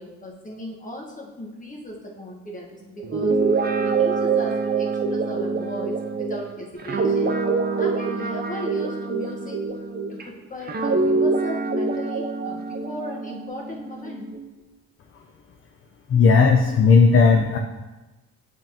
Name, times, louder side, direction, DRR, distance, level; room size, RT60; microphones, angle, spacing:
voice 1, 0.0-3.4 3.8-7.4 7.8-9.6 10.1-14.3, equal, 25° left, -2 dB, 1.4 m, -36 dB
Guitar, 3.0-10.2 10.7-14.4, right 4 dB, 30° right, 0.6 m, -25 dB
voice 2, 16.1-17.6, left 5 dB, 45° left, 3 dB, 0.5 m, -15 dB
8.9 x 3.6 x 2.9 m, 1.1 s
cardioid pair, 90°, 30 cm